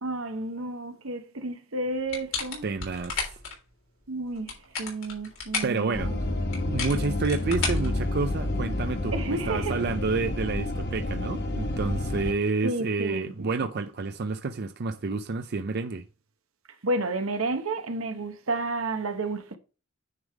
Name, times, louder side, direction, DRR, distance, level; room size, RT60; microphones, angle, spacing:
voice 1, 0.0-2.7 4.1-6.2 9.1-9.8 12.6-13.5 16.8-19.6, right 2 dB, 85° right, 1.1 m, -31 dB
sound 1, 2.1-3.5 4.3-5.8 6.5-8.5, left 5 dB, 75° left, 3.4 m, -33 dB
voice 2, 2.6-3.3 5.6-6.1 6.7-16.0, right 4 dB, 50° right, 0.5 m, -29 dB
sound 2, 5.9-12.3, left 1 dB, 55° left, 1.1 m, -29 dB
9.6 x 3.6 x 4.7 m
head